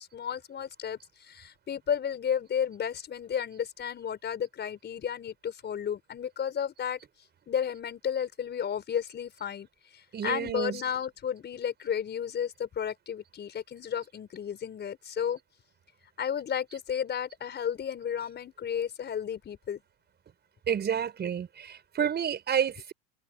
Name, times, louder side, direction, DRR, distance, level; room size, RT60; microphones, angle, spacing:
voice 1, 0.0-7.0 7.5-9.7 10.2-15.4 16.2-19.8, left 8 dB, 25° left, 5.7 m, -33 dB
voice 2, 10.1-10.8 20.7-22.9, right 8 dB, 25° right, 6.0 m, -30 dB
supercardioid pair, 125°, 41 cm